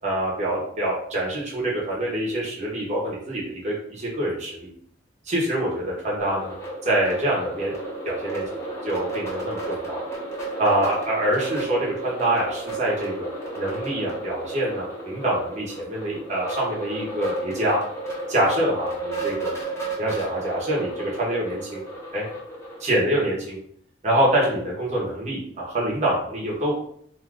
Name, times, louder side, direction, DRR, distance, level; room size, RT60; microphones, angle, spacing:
voice 1, 0.0-4.7 5.3-6.5 6.8-7.7 8.0-10.0 10.6-13.3 13.6-17.8 18.3-19.5 20.0-21.8 22.1-22.3 22.8-23.6 24.0-26.7, right 1 dB, 40° right, -5 dB, 0.9 m, -25 dB
sound 1, 6.2-22.9, right 2 dB, 15° left, 0.8 m, -33 dB
2.7 x 2.4 x 3.5 m, 0.66 s
head